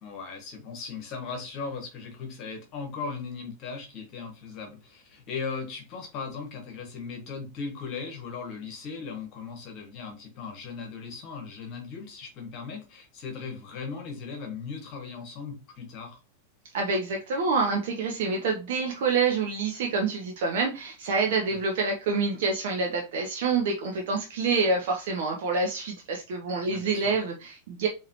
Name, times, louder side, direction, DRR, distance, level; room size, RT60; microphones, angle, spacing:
voice 1, 0.0-16.2 26.6-27.1, left 5 dB, 40° left, 4 dB, 1.3 m, -38 dB
voice 2, 16.7-27.9, right 4 dB, 55° right, 1 dB, 0.8 m, -27 dB
4.7 x 2.8 x 3.0 m, 0.30 s
figure-of-eight pair, 90°, 0 cm